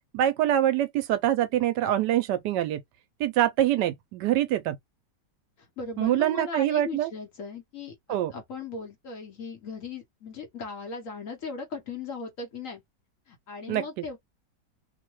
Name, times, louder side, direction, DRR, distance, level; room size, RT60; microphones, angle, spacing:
voice 1, 0.1-2.8 3.2-4.8 6.0-7.1 8.1-8.3 13.7-14.0, right 12 dB, 75° right, 1.1 m, -25 dB
voice 2, 5.6-12.8 13.3-14.2, left 4 dB, 55° left, 1.1 m, -38 dB
3.1 x 2.2 x 3.0 m
omnidirectional pair, 1.9 m